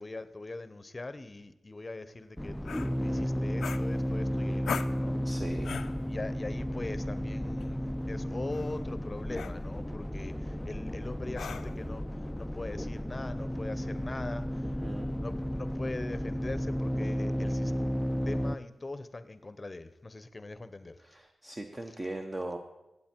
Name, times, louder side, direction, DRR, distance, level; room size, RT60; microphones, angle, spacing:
voice 1, 0.0-5.2 6.1-14.8 15.2-17.7 18.2-21.0 21.9-22.0, left 2 dB, 30° left, 13 dB, 0.7 m, -42 dB
sound 1, 2.4-18.6, equal, 5° left, 0.4 m, -33 dB
sound 2, 2.6-2.9 3.6-4.3 4.6-5.0 5.6-6.0 7.4-7.6 8.5-8.8 9.3-9.6 11.3-11.8, left 6 dB, 90° left, 0.4 m, -38 dB
voice 2, 5.2-5.8 14.8-15.1 21.0-22.6, right 1 dB, 30° right, 4 dB, 0.9 m, -39 dB
16.0 x 8.3 x 4.5 m, 0.98 s
cardioid pair, 80°, 0 cm